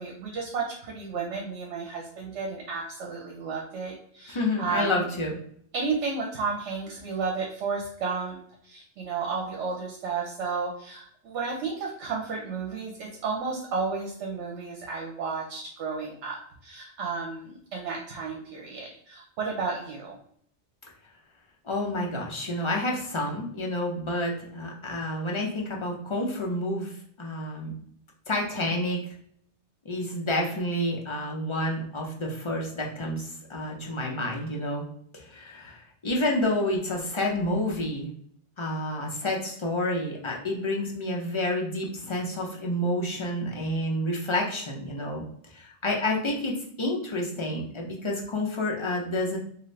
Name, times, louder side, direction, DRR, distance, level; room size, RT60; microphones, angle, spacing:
voice 1, 0.0-5.1 5.7-20.2, right 4 dB, 80° right, 0 dB, 0.9 m, -32 dB
voice 2, 4.3-5.4 21.6-26.9 27.2-27.7 28.3-29.1 29.8-34.8 35.1-38.1 38.6-49.4, left 1 dB, 35° left, -1 dB, 0.5 m, -29 dB
2.7 x 2.5 x 3.1 m, 0.64 s
omnidirectional pair, 1.2 m